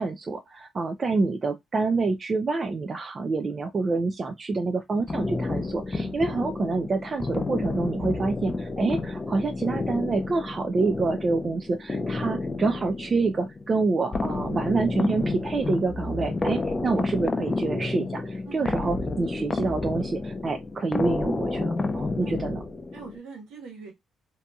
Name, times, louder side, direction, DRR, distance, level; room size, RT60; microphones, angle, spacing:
voice 1, 0.0-22.6, right 3 dB, 40° right, 0.3 m, -27 dB
sound 1, 5.1-23.2, left 3 dB, 25° left, 0.5 m, -30 dB
voice 2, 22.9-23.9, right 5 dB, 90° right, 1.2 m, -43 dB
2.7 x 2.6 x 2.2 m
cardioid pair, 90°, 0 cm